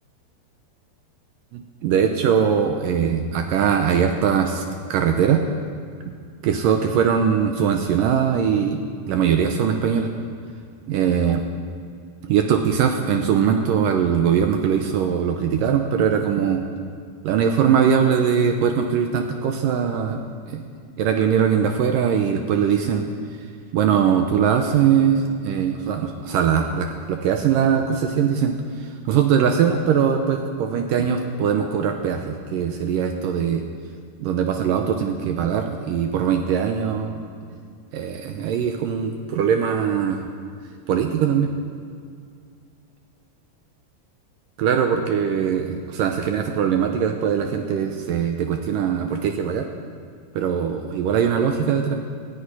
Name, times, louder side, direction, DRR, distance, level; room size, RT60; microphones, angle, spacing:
voice 1, 1.5-4.6 4.9-5.4 6.1-6.2 6.4-8.8 9.1-10.1 10.9-11.4 12.2-16.6 17.2-20.2 20.5-20.6 21.0-23.0 23.7-33.6 34.2-37.1 37.9-40.3 40.9-41.5 44.6-49.7 50.4-52.0, right 7 dB, 75° right, 5 dB, 2.1 m, -21 dB
14.5 x 10.0 x 9.6 m, 2.2 s
omnidirectional pair, 4.8 m